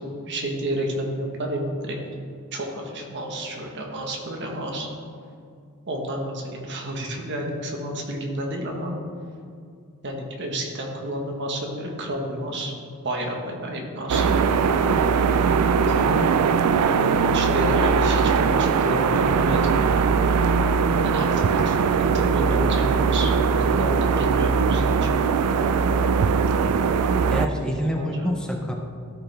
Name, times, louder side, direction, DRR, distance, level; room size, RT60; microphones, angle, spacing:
voice 1, 0.0-2.0 2.5-4.9 5.9-9.0 10.0-12.7 13.0-14.3 15.9-16.2 16.9-19.9 21.0-23.3 23.6-25.1 27.8-28.3, right 1 dB, 55° right, 1 dB, 1.3 m, -30 dB
sound 1, 14.1-27.5, right 5 dB, 90° right, 0.4 m, -20 dB
voice 2, 15.9-16.3 27.3-28.7, equal, 5° left, 1 dB, 0.5 m, -27 dB
13.5 x 5.1 x 3.4 m, 2.4 s
head